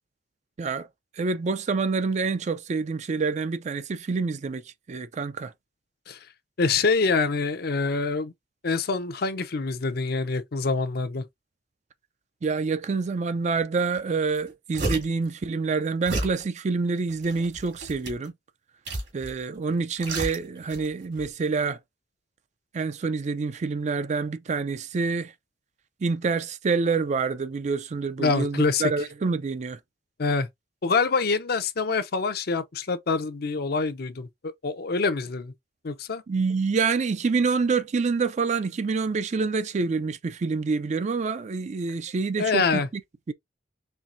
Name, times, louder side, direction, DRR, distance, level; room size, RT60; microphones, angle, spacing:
voice 1, 1.2-4.6 4.9-5.5 12.4-18.3 19.1-21.8 22.7-25.3 26.0-29.8 36.3-42.8 43.3-43.4, right 4 dB, 40° right, 0.4 m, -27 dB
voice 2, 6.6-8.3 8.6-11.2 28.2-28.9 30.2-30.5 30.8-35.5 35.8-36.2 42.4-42.9, left 4 dB, 60° left, 0.6 m, -25 dB
sound 1, 13.9-14.0 14.3-15.2 16.1-16.4 17.1-18.3 18.8-19.4 19.7-20.9 21.1-21.3, right 2 dB, 70° right, 2.2 m, -31 dB
4.5 x 3.2 x 2.5 m
head